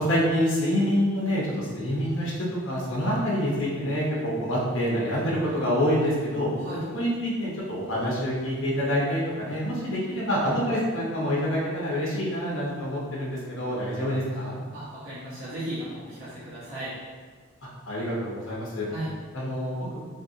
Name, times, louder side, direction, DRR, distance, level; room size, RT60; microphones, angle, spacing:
voice 1, 0.0-2.3 2.6-6.5 6.9-14.5 17.9-18.9 19.3-19.9, equal, 80° left, -6 dB, 0.8 m, -26 dB
voice 2, 14.7-16.9 18.9-19.1, right 1 dB, 85° right, -10 dB, 1.0 m, -35 dB
3.3 x 2.6 x 2.7 m, 1.5 s
head